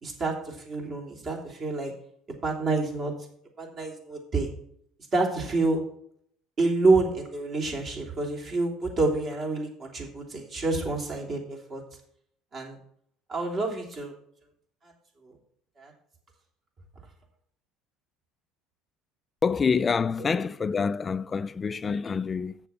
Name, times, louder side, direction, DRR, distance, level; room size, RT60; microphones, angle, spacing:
voice 1, 0.0-1.9 2.4-3.1 3.6-4.5 5.1-5.8 6.6-11.8 12.5-12.8 13.3-14.1 15.2-15.4 15.8-15.9 20.2-20.3, right 3 dB, 40° right, 3.1 m, -28 dB
voice 2, 19.4-22.6, left 5 dB, 30° left, 0.3 m, -27 dB
7.7 x 6.8 x 5.8 m
supercardioid pair, 95°, 0 cm